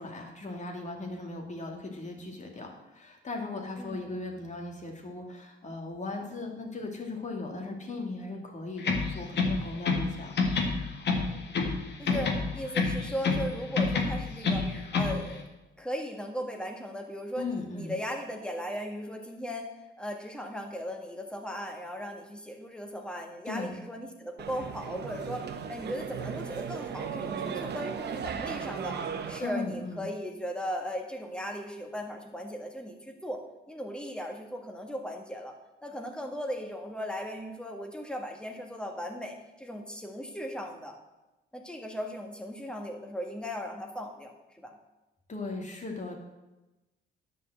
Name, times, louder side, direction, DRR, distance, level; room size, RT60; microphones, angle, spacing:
voice 1, 0.0-10.3 17.4-17.9 23.4-23.8 29.4-30.0 45.3-46.1, left 3 dB, 35° left, 2 dB, 2.5 m, -37 dB
voice 2, 3.8-4.1 12.0-15.4 15.8-19.7 20.0-29.0 29.3-33.4 33.7-41.0 41.5-44.3 44.6-44.7, equal, 5° left, 3 dB, 1.8 m, -37 dB
sound 1, 8.8-10.1 10.4-11.8 12.1-13.5 13.8-15.2, left 4 dB, 60° left, 1.8 m, -27 dB
sound 2, 24.4-29.4, right 7 dB, 55° right, 1.1 m, -36 dB
10.5 x 5.5 x 7.7 m, 1.0 s
cardioid pair, 90°, 20 cm